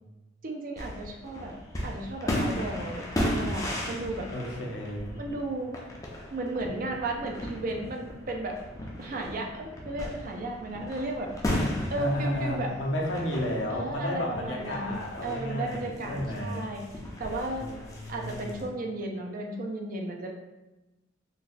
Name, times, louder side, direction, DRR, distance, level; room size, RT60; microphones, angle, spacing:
voice 1, 0.4-1.5 1.8-4.3 5.2-5.7 6.3-8.6 9.0-11.3 11.9-12.8 13.7-16.8 17.2-17.7 18.1-20.3, right 2 dB, 45° right, 2 dB, 0.4 m, -34 dB
sound 1, 0.8-18.7, left 1 dB, 20° left, 0.4 m, -36 dB
voice 2, 4.3-5.2 12.0-16.7 17.6-18.5, left 1 dB, 75° left, -2 dB, 0.7 m, -32 dB
3.9 x 2.2 x 2.6 m, 1.0 s
head